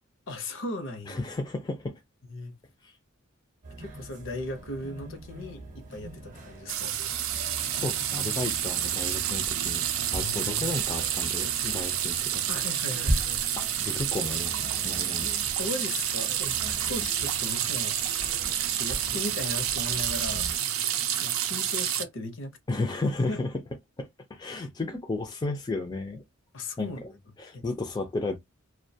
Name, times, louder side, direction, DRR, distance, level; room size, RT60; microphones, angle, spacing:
voice 1, 0.3-1.2 2.2-2.5 3.8-6.9 10.1-10.7 12.5-13.4 15.6-18.3 18.7-20.5 21.2-22.5 23.3-23.4 26.5-27.2 27.5-27.6, left 2 dB, 65° left, 0.6 m, -37 dB
voice 2, 1.1-2.0 2.8-2.9 7.7-9.8 10.1-12.4 13.6-15.3 22.7-23.5 24.0-26.2 26.8-26.9 27.4-28.4, left 2 dB, 20° left, 0.3 m, -33 dB
sound 1, 3.6-20.6, right 1 dB, 35° right, 0.7 m, -40 dB
sound 2, 6.7-22.0, right 10 dB, 80° right, 0.4 m, -29 dB
2.2 x 2.1 x 2.6 m
head